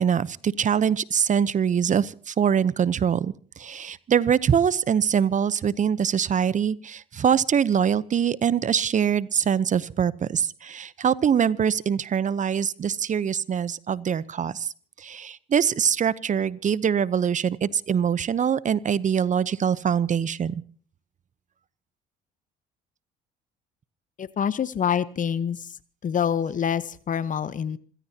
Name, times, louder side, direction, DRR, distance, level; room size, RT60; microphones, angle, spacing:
voice 1, 0.0-14.7 15.0-20.6, right 8 dB, 40° right, 19 dB, 0.8 m, -23 dB
voice 2, 24.2-25.8 26.0-27.8, left 8 dB, 45° left, 17 dB, 1.0 m, -26 dB
27.5 x 16.0 x 2.9 m, 0.44 s
supercardioid pair, 70°, 19 cm